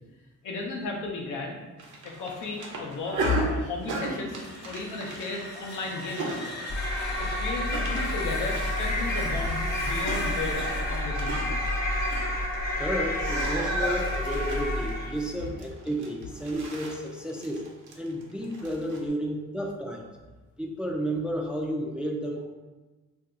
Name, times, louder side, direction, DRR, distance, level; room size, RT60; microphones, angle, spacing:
voice 1, 0.4-1.6 2.0-4.4 4.6-6.5 7.2-10.6 10.9-11.6, left 3 dB, 80° left, 0 dB, 0.7 m, -34 dB
sound 1, 1.8-12.9 13.1-19.0, right 1 dB, 75° right, 0.7 m, -36 dB
sound 2, 4.1-12.9, left 2 dB, 55° left, 1.1 m, -40 dB
sound 3, 6.7-15.3, left 1 dB, 30° left, 0.8 m, -29 dB
voice 2, 12.8-17.6 18.0-20.1 20.6-22.4, equal, 5° right, 1 dB, 0.3 m, -32 dB
2.6 x 2.3 x 3.7 m, 1.2 s
cardioid pair, 90°, 30 cm